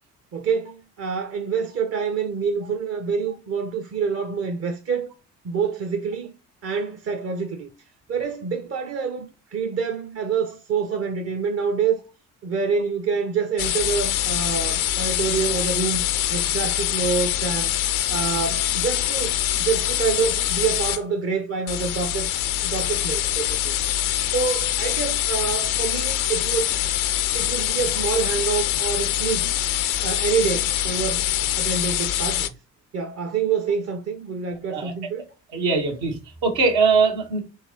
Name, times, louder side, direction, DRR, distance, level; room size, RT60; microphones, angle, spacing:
voice 1, 0.3-5.1 5.4-6.3 6.6-7.7 8.1-12.0 12.4-16.0 16.3-17.7 18.1-22.3 22.6-23.7 24.3-26.8 27.3-29.6 30.0-32.6 32.9-35.2, right 6 dB, 35° right, 0.7 m, -27 dB
sound 1, 13.6-21.0 21.7-32.5, left 12 dB, 80° left, 0.6 m, -24 dB
voice 2, 35.5-37.4, right 4 dB, 70° right, 1.3 m, -21 dB
4.6 x 3.2 x 2.8 m
hypercardioid pair, 50°, 42 cm